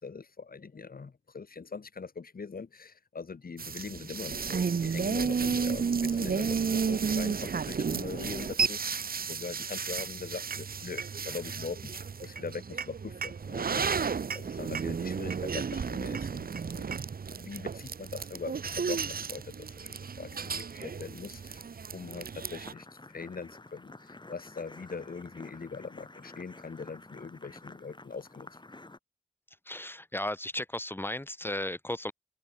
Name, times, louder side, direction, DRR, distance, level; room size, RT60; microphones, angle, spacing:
voice 1, 0.0-16.9 17.4-21.6 21.9-28.5, left 5 dB, 85° left, 6.9 m, -42 dB
sound 1, 3.6-22.7, right 6 dB, 85° right, 1.1 m, -33 dB
sound 2, 22.6-29.0, left 2 dB, 30° left, 6.0 m, -50 dB
voice 2, 29.5-32.1, left 1 dB, 15° left, 3.4 m, -35 dB
open air
wide cardioid pair, 90°, 15 cm